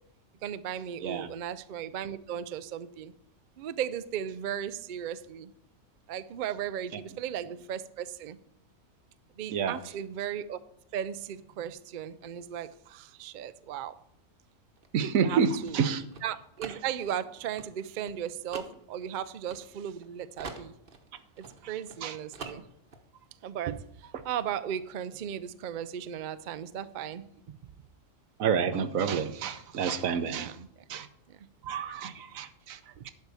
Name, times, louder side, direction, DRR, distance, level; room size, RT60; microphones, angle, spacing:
voice 1, 0.4-3.1 3.6-5.5 6.1-8.4 9.4-10.6 10.9-13.9 15.1-15.8 16.2-20.7 21.4-22.6 23.4-23.8 24.2-27.5 30.3-30.7 31.3-31.4 33.0-33.1, right 9 dB, 60° right, 0.5 m, -36 dB
sound 1, 14.8-20.1 20.4-22.0 22.3-23.0, right 4 dB, 45° right, 1.1 m, -45 dB
voice 2, 14.9-16.0 22.0-22.2 28.4-30.5 30.9-31.1 31.7-32.8 33.0-33.1, right 6 dB, 85° right, 1.2 m, -29 dB
11.0 x 4.7 x 6.8 m
omnidirectional pair, 1.4 m